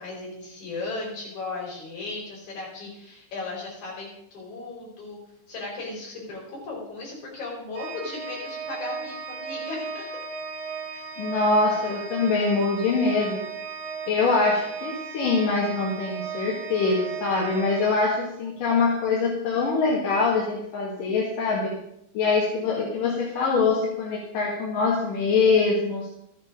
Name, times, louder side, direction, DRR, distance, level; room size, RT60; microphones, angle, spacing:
voice 1, 0.0-5.2 5.5-10.0 10.9-11.0, left 3 dB, 65° left, -3 dB, 5.9 m, -36 dB
Organ, 7.7-18.6, right 5 dB, 60° right, 2.2 m, -36 dB
voice 2, 11.2-13.4 14.1-21.7 22.2-26.1, left 4 dB, 85° left, -3 dB, 3.6 m, -24 dB
13.5 x 9.7 x 5.3 m, 0.79 s
omnidirectional pair, 3.7 m